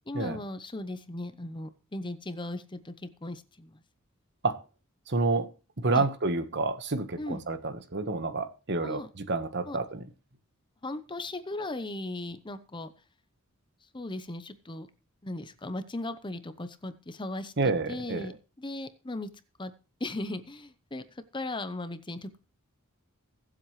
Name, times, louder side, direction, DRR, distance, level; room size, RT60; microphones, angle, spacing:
voice 1, 0.1-3.8 5.9-6.1 7.2-7.4 8.8-9.1 9.7-9.8 10.8-12.9 13.9-14.9 15.2-19.3 19.6-19.7 20.0-22.4, left 2 dB, 20° left, 11 dB, 0.8 m, -37 dB
voice 2, 5.1-5.5 5.8-10.0 17.6-18.3, right 3 dB, 55° right, 10 dB, 1.3 m, -29 dB
23.0 x 7.7 x 3.2 m, 0.33 s
head